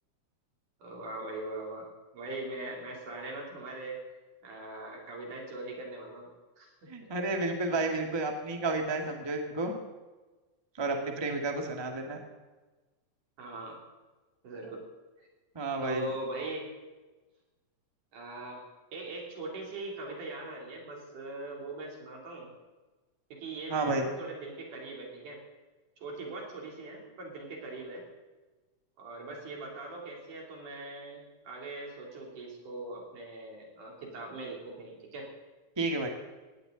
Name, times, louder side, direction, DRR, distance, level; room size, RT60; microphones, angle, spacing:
voice 1, 0.8-1.9 2.1-4.0 4.4-6.3 6.6-6.9 13.4-13.8 14.4-14.8 15.8-16.7 18.1-18.6 18.9-22.5 23.3-25.4 26.0-28.0 29.0-35.3, right 2 dB, 85° right, -1 dB, 4.9 m, -41 dB
voice 2, 6.9-9.7 10.8-12.2 15.5-16.1 23.7-24.1 35.8-36.1, right 2 dB, 10° right, 3 dB, 1.3 m, -31 dB
18.0 x 17.5 x 4.0 m, 1.2 s
omnidirectional pair, 3.5 m